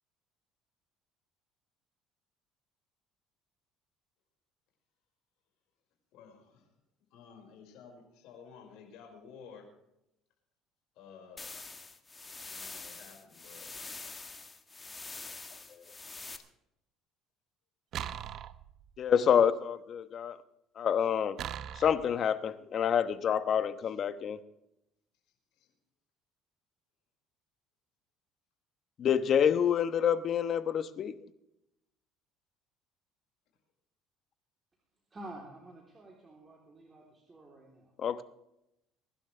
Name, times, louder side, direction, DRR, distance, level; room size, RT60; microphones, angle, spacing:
voice 1, 6.1-6.7 7.1-9.7 11.0-11.6 12.5-13.7 25.5-25.7, left 6 dB, 75° left, 5.3 m, -53 dB
sound 1, 11.4-16.4, left 3 dB, 20° left, 1.5 m, -45 dB
sound 2, 17.9-19.1 21.4-22.2, right 10 dB, 55° right, 0.7 m, -40 dB
voice 2, 19.0-20.4 20.8-21.4 21.7-24.4 29.0-31.1 38.0-38.2, left 8 dB, 45° left, 1.0 m, -27 dB
voice 3, 35.1-37.9, right 1 dB, 20° right, 3.4 m, -49 dB
23.0 x 11.5 x 3.4 m
cardioid pair, 115°, 0 cm